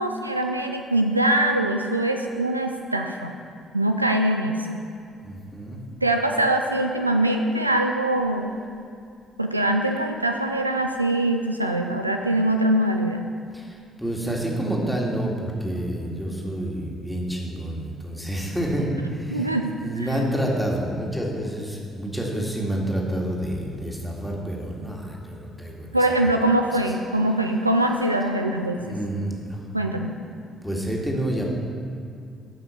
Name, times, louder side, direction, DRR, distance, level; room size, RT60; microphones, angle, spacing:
voice 1, 0.0-3.3 3.7-4.8 6.0-8.6 9.4-13.3 19.3-19.8 25.9-29.0 29.7-30.1, right 1 dB, 90° right, 4 dB, 0.3 m, -23 dB
voice 2, 5.2-5.8 13.5-19.5 19.8-26.0 28.8-29.6 30.6-31.4, right 1 dB, ahead, -2 dB, 2.0 m, -28 dB
14.0 x 5.6 x 4.4 m, 2.4 s
figure-of-eight pair, 45°, 0 cm